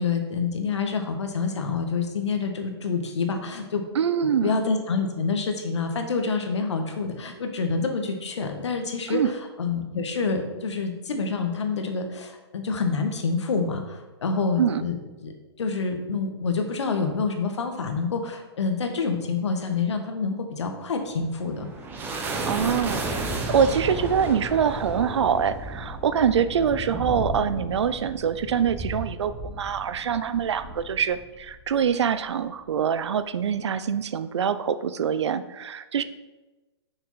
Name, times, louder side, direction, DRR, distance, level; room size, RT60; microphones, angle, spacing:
voice 1, 0.0-3.8 4.4-9.2 9.6-15.3 15.6-21.7, left 4 dB, 80° left, 5 dB, 1.5 m, -27 dB
voice 2, 3.9-4.6 9.1-9.3 14.6-14.8 22.5-36.0, right 7 dB, 75° right, 13 dB, 0.6 m, -24 dB
sound 1, 21.1-31.9, right 2 dB, 15° right, 1.0 m, -33 dB
6.5 x 5.9 x 5.6 m, 1.1 s
hypercardioid pair, 150°, 15 cm